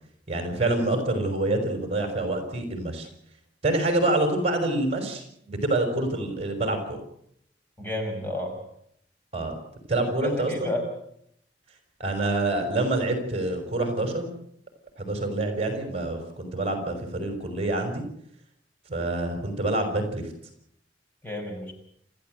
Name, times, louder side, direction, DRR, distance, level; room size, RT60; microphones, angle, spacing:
voice 1, 0.3-3.1 3.6-7.0 9.3-9.6 9.9-10.7 12.0-14.3 15.0-18.0 18.9-20.2, right 2 dB, 35° right, 5 dB, 5.7 m, -26 dB
voice 2, 7.8-8.6 10.0-10.8 21.2-21.7, left 1 dB, 10° left, 2 dB, 5.8 m, -31 dB
29.0 x 15.0 x 8.0 m, 0.72 s
head